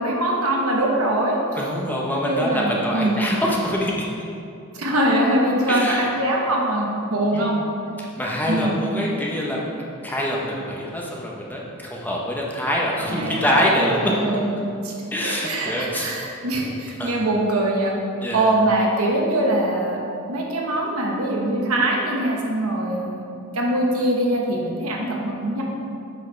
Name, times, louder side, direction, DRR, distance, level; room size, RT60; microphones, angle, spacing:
voice 1, 0.0-1.4 2.1-3.2 4.7-7.6 8.5-8.8 13.1-15.0 15.2-17.9 18.3-20.0 20.3-23.3 23.5-25.6, right 1 dB, 70° right, -2 dB, 1.0 m, -23 dB
voice 2, 1.5-4.1 5.7-6.1 7.3-7.5 8.0-9.6 10.0-14.1 15.1-16.1 17.0-17.2 18.2-18.5, equal, 10° left, -3 dB, 0.7 m, -25 dB
8.1 x 4.6 x 3.2 m, 2.6 s
head